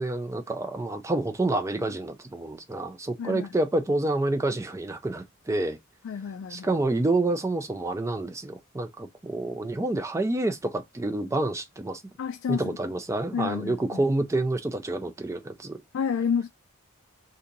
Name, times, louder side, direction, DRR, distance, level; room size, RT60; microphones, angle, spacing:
voice 1, 0.0-5.8 6.5-12.0 12.5-15.8, right 2 dB, 15° right, 0.4 m, -28 dB
voice 2, 3.2-3.5 6.0-6.7 12.2-12.8 13.3-14.0 15.9-16.5, left 6 dB, 60° left, 0.3 m, -29 dB
2.8 x 2.6 x 3.8 m
head